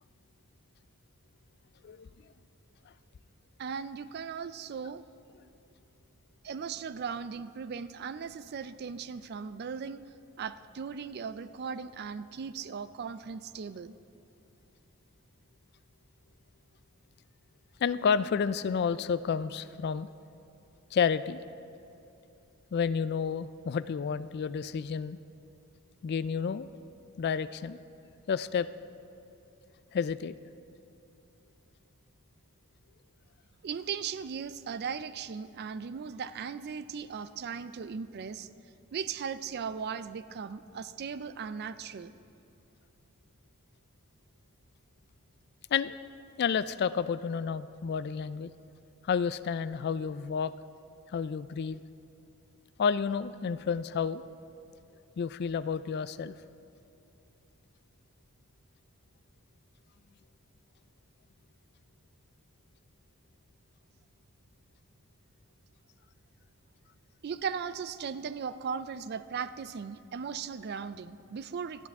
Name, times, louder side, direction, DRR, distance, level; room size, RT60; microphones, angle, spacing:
voice 1, 3.6-5.0 6.4-10.0 10.4-14.0 33.6-38.5 38.9-42.1 67.2-71.9, right 6 dB, 45° right, 14 dB, 0.4 m, -38 dB
voice 2, 17.8-20.1 20.9-21.4 22.7-25.2 26.0-26.7 27.2-27.8 28.3-28.7 29.9-30.3 45.7-46.0 46.4-48.5 49.1-50.5 51.1-51.8 52.8-54.2 55.2-56.3, left 6 dB, 50° left, 15 dB, 0.3 m, -30 dB
18.5 x 13.0 x 3.6 m, 2.8 s
head